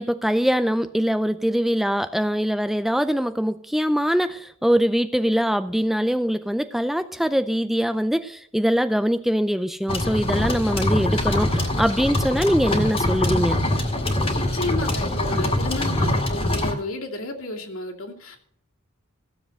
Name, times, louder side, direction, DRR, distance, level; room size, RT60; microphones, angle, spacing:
voice 1, 0.0-13.6, equal, ahead, 11 dB, 0.4 m, -23 dB
sound 1, 9.9-16.7, left 1 dB, 25° left, 2.1 m, -23 dB
voice 2, 14.4-18.4, left 2 dB, 75° left, 0 dB, 2.6 m, -32 dB
15.0 x 7.5 x 6.2 m, 0.66 s
head